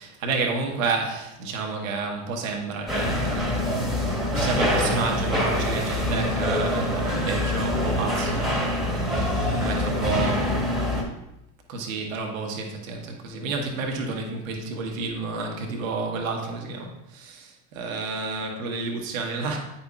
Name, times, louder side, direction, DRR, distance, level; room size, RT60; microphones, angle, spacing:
voice 1, 0.0-3.7 4.4-8.7 9.1-10.5 11.7-19.6, right 3 dB, 80° right, 2 dB, 1.2 m, -30 dB
sound 1, 2.9-11.0, left 1 dB, ahead, 1.5 m, -25 dB
8.5 x 5.6 x 2.4 m, 0.87 s
hypercardioid pair, 80°, 40 cm